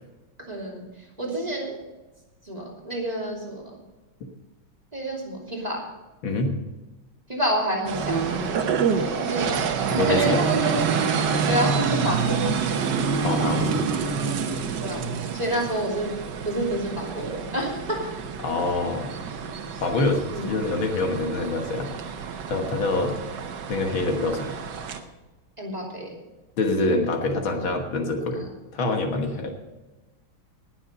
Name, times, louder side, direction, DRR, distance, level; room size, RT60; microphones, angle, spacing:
voice 1, 0.4-0.8 1.2-1.7 2.4-3.8 4.9-5.8 7.3-10.8 11.5-12.8 14.8-15.0 15.3-16.1 16.4-18.0 19.3-19.5 20.3-20.5 25.6-26.1 28.4-28.5, right 1 dB, 20° right, -2 dB, 3.0 m, -29 dB
voice 2, 6.2-6.6 9.9-10.4 13.2-13.8 18.4-19.1 19.8-21.9 22.5-23.2 23.7-24.6 26.6-28.4 28.7-29.5, left 2 dB, 70° left, 3 dB, 2.2 m, -25 dB
sound 1, 7.9-25.0, right 6 dB, 60° right, 1.5 m, -27 dB
19.0 x 7.3 x 5.3 m, 1.1 s
omnidirectional pair, 2.3 m